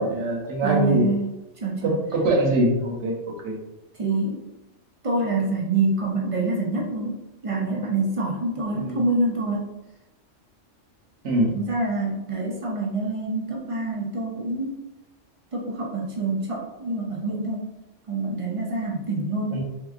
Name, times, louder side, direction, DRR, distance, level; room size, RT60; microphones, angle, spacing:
voice 1, 0.0-1.0 1.8-3.6 8.7-9.0 11.2-11.6 19.5-19.6, right 1 dB, 70° right, 0 dB, 1.1 m, -23 dB
voice 2, 0.6-1.9 4.0-4.4 5.0-9.7 11.5-14.9 15.5-17.7 18.1-19.6, right 2 dB, 50° right, -3 dB, 0.4 m, -26 dB
3.5 x 2.8 x 2.4 m, 0.96 s
omnidirectional pair, 1.3 m